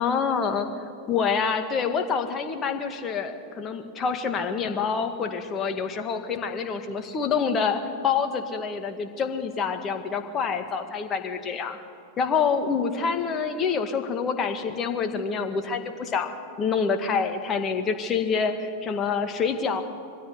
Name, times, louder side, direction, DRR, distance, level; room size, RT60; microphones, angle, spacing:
voice 1, 0.0-11.8 12.2-16.3 16.6-19.8, left 6 dB, 25° left, 7 dB, 2.1 m, -27 dB
23.0 x 16.0 x 9.9 m, 2.3 s
figure-of-eight pair, 90°, 0 cm